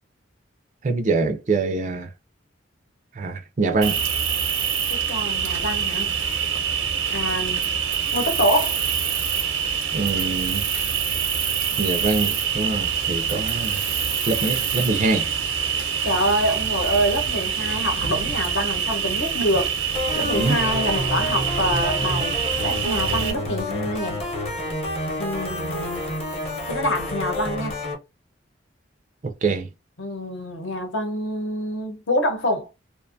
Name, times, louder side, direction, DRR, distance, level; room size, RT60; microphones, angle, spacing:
voice 1, 0.8-2.1 3.1-4.0 9.9-10.7 11.8-13.8 14.3-15.3 20.3-20.6 29.2-29.7, right 3 dB, 40° right, 0.3 m, -24 dB
Cricket, 3.8-23.3, right 7 dB, 90° right, 0.7 m, -25 dB
voice 2, 4.9-6.2 7.1-7.6 8.1-8.8 16.0-19.7 20.1-24.2 25.2-26.0 26.7-27.8 30.0-32.7, equal, 75° left, 0.9 m, -26 dB
sound 1, 19.9-28.0, left 1 dB, 30° left, 0.8 m, -29 dB
2.5 x 2.2 x 2.5 m
head